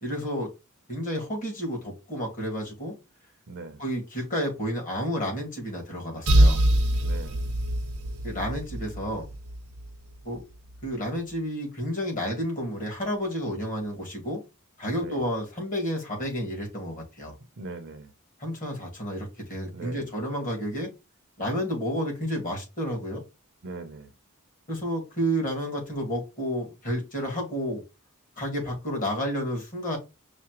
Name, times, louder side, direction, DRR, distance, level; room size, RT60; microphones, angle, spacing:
voice 1, 0.0-0.5 0.9-2.9 3.8-6.6 8.2-9.2 10.2-10.4 10.8-14.4 14.8-17.3 18.4-20.9 21.4-23.2 24.7-27.8 28.4-30.0, equal, 35° left, 1.7 m, -31 dB
voice 2, 3.5-3.8 7.0-7.4 15.0-15.3 17.6-18.1 19.7-20.1 23.6-24.1, right 3 dB, 55° right, 0.6 m, -40 dB
sound 1, 6.3-9.9, right 1 dB, 90° right, 0.8 m, -23 dB
5.6 x 2.1 x 2.9 m
head